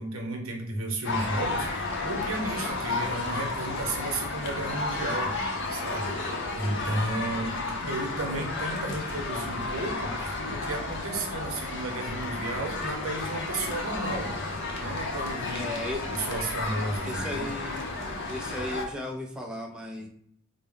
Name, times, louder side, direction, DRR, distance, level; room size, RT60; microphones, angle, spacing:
voice 1, 0.0-14.3 14.8-15.7 16.1-17.5, right 2 dB, 70° right, 2 dB, 0.8 m, -34 dB
sound 1, 1.0-18.9, left 3 dB, 60° left, 0.6 m, -32 dB
voice 2, 15.5-16.0 17.1-17.8 18.3-20.1, left 1 dB, 5° right, 0 dB, 0.3 m, -35 dB
4.2 x 2.0 x 3.6 m, 0.71 s
head